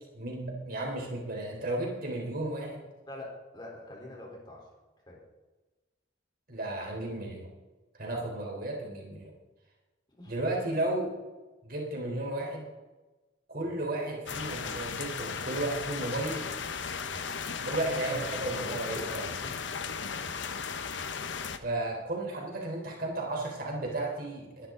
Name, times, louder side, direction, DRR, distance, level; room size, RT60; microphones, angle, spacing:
voice 1, 0.1-2.9 6.5-7.5 7.9-9.3 10.3-11.1 11.6-12.7 13.5-16.5 17.6-19.3 21.6-24.7, right 2 dB, 50° right, -1 dB, 3.9 m, -34 dB
voice 2, 3.1-4.7 5.1-5.2 10.1-10.4 13.6-13.8 17.0-17.3 18.6-19.6 20.1-20.7, left 1 dB, 25° left, -2 dB, 3.8 m, -45 dB
sound 1, 14.3-21.6, left 6 dB, 75° left, 1.0 m, -36 dB
20.5 x 11.5 x 3.8 m, 1.2 s
head